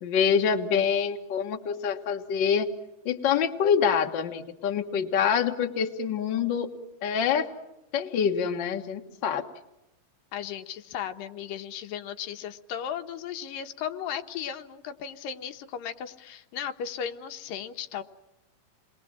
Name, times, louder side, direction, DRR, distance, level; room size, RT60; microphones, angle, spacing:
voice 1, 0.0-2.7 3.0-6.7 7.0-7.5 7.9-9.4, left 7 dB, 45° left, 5 dB, 1.6 m, -26 dB
voice 2, 10.3-18.0, left 8 dB, 85° left, 7 dB, 2.8 m, -36 dB
28.5 x 21.5 x 7.5 m, 0.91 s
omnidirectional pair, 3.8 m